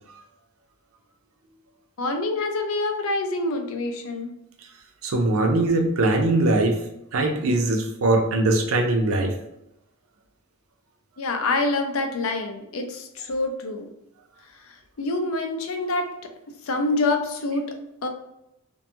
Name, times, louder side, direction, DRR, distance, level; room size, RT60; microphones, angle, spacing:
voice 1, 2.0-4.3 11.2-13.9 14.6-18.1, left 2 dB, 75° left, 5 dB, 0.5 m, -27 dB
voice 2, 5.0-6.8 7.1-9.3, right 2 dB, 70° right, 4 dB, 0.5 m, -21 dB
2.5 x 2.2 x 2.7 m, 0.83 s
head